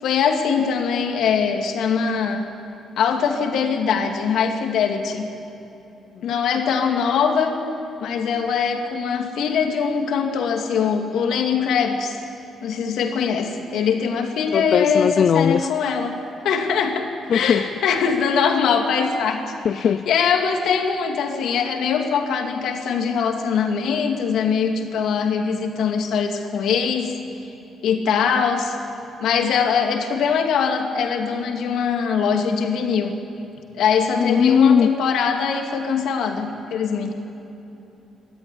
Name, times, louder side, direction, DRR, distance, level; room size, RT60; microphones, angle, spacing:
voice 1, 0.0-2.5 3.0-5.3 6.2-7.5 8.0-12.1 12.6-16.2 16.4-19.4 19.7-27.2 27.8-28.8 29.2-33.1 33.7-37.1, left 6 dB, 80° left, 3 dB, 2.5 m, -22 dB
voice 2, 14.5-15.7 17.3-17.6 19.6-20.0 34.1-34.9, left 7 dB, 55° left, 12 dB, 0.5 m, -18 dB
22.5 x 14.0 x 9.9 m, 3.0 s
cardioid pair, 90°, 0 cm